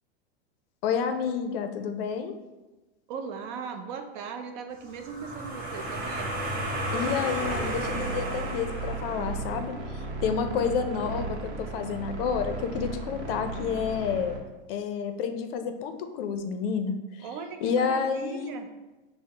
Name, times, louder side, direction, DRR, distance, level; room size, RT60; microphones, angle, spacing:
voice 1, 0.8-2.3 6.9-14.3 14.7-17.3 17.6-18.5, left 6 dB, 60° left, 7 dB, 0.5 m, -30 dB
voice 2, 3.1-6.3 17.2-18.7, right 6 dB, 45° right, 6 dB, 0.4 m, -38 dB
sound 1, 4.9-9.6, right 1 dB, 30° right, 0.8 m, -33 dB
sound 2, 7.4-14.4, right 3 dB, 80° right, 0.8 m, -36 dB
5.6 x 2.1 x 2.9 m, 1.1 s
hypercardioid pair, 120°, 33 cm